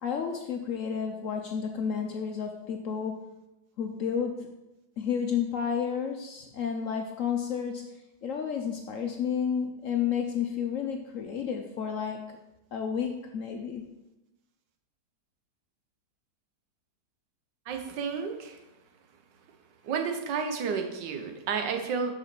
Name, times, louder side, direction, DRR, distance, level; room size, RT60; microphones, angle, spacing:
voice 1, 0.0-3.2 3.8-4.5 5.0-12.4 12.7-13.8, left 7 dB, 65° left, 4 dB, 0.8 m, -31 dB
voice 2, 17.7-18.6 19.8-22.1, right 6 dB, 80° right, 5 dB, 1.6 m, -31 dB
5.8 x 5.6 x 6.0 m, 0.96 s
omnidirectional pair, 1.9 m